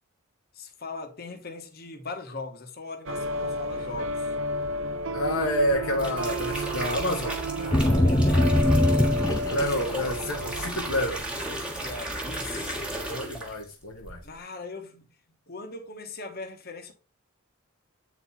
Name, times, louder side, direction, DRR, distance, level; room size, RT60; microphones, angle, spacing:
voice 1, 0.5-4.4 7.7-9.3 11.6-13.1 14.2-15.1 15.5-16.9, left 3 dB, 45° left, 1.2 m, -40 dB
sound 1, 3.1-10.7, equal, 55° right, 0.5 m, -31 dB
voice 2, 5.1-8.2 9.5-11.2 13.1-14.2, equal, 65° left, 0.9 m, -29 dB
sound 2, 5.7-13.7 14.0-14.4, right 1 dB, 5° right, 1.4 m, -35 dB
sound 3, 7.7-9.7 10.1-10.6, left 1 dB, 15° left, 0.5 m, -22 dB
8.6 x 4.1 x 4.1 m
head